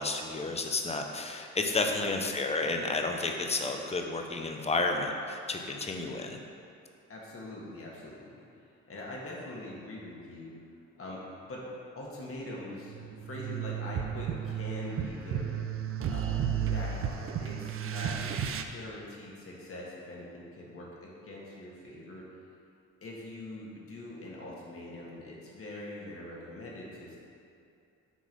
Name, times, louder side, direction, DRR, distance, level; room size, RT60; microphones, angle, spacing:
voice 1, 0.0-6.4, left 3 dB, 20° left, 3 dB, 0.7 m, -31 dB
voice 2, 7.1-10.6 11.0-11.7 11.9-15.6 16.1-18.4 18.7-22.3 23.0-27.2, left 1 dB, 50° left, -4 dB, 1.6 m, -43 dB
sound 1, 12.9-18.6, right 8 dB, 45° right, 0.5 m, -33 dB
6.2 x 3.9 x 5.3 m, 2.6 s
cardioid pair, 90°, 30 cm